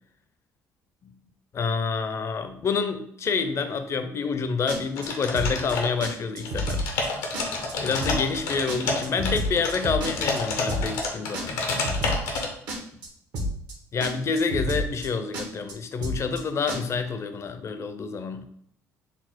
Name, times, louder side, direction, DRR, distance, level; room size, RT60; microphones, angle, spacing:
voice 1, 1.5-6.9 7.8-11.6 13.9-18.4, left 5 dB, 45° left, 9 dB, 0.5 m, -28 dB
sound 1, 4.7-5.1 5.3-5.7 6.0-6.1 6.4-7.1 7.3-7.7 8.0-8.4 8.7-10.4 10.7-11.1 11.3-12.4 12.7-13.1 13.3-13.7 14.0-14.1 14.4-15.1 15.3-15.7 16.0-16.4 16.7-16.8, equal, 75° right, 1.0 m, -29 dB
sound 2, 5.0-6.1 6.4-12.5, left 3 dB, 85° left, 0.9 m, -29 dB
4.1 x 2.0 x 4.4 m, 0.68 s
supercardioid pair, 80°, 7 cm